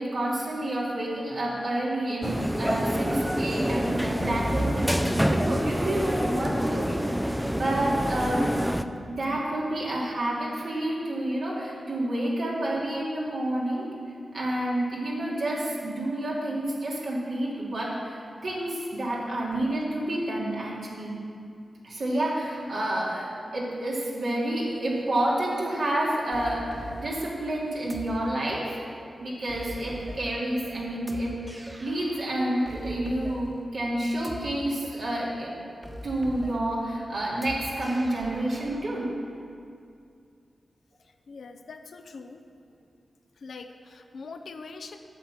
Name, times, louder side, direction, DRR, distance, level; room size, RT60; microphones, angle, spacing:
voice 1, 0.0-7.2 7.5-8.5 9.1-13.9 14.3-21.2 21.8-23.3 23.5-28.8 29.2-35.5 36.0-39.1, right 1 dB, 75° right, -6 dB, 2.5 m, -29 dB
sound 1, 2.2-8.8, equal, 5° right, 0.5 m, -26 dB
sound 2, 26.3-39.0, equal, 20° right, 1.4 m, -43 dB
voice 2, 41.0-42.4 43.4-45.0, left 4 dB, 75° left, 7 dB, 0.6 m, -43 dB
8.9 x 7.3 x 6.3 m, 2.4 s
cardioid pair, 45°, 0 cm